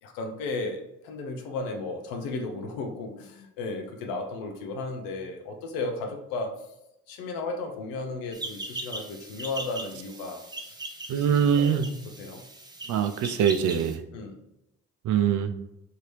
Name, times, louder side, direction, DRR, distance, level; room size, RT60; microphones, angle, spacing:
voice 1, 0.0-6.6 7.1-10.8 11.1-11.8 12.2-12.4 14.1-14.4, left 3 dB, 90° left, 3 dB, 0.5 m, -34 dB
sound 1, 8.3-14.0, right 2 dB, 10° right, 0.6 m, -40 dB
voice 2, 11.1-11.9 12.9-14.0 15.0-15.5, right 8 dB, 65° right, 8 dB, 0.5 m, -23 dB
3.0 x 2.8 x 3.2 m, 0.89 s
supercardioid pair, 60°, 33 cm